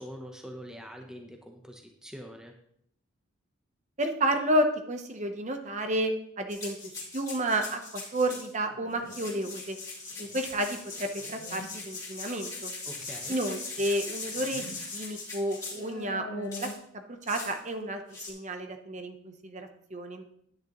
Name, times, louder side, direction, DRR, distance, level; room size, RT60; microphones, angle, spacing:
voice 1, 0.0-2.6 12.9-13.4, equal, 5° right, 2 dB, 0.7 m, -44 dB
voice 2, 4.0-9.8 10.2-12.7 13.3-14.7 14.9-18.0 18.3-20.2, right 1 dB, 35° right, 6 dB, 0.8 m, -31 dB
sound 1, 6.5-8.5 9.0-15.9 16.5-16.8 17.3-17.6 18.1-18.3, left 3 dB, 15° left, 2.3 m, -40 dB
sound 2, 8.7-9.4 10.1-10.5 11.2-11.7 13.0-13.1 14.2-14.8 15.1-15.2 15.7-16.7, left 1 dB, 80° left, 1.5 m, -44 dB
10.5 x 9.5 x 3.0 m, 0.70 s
head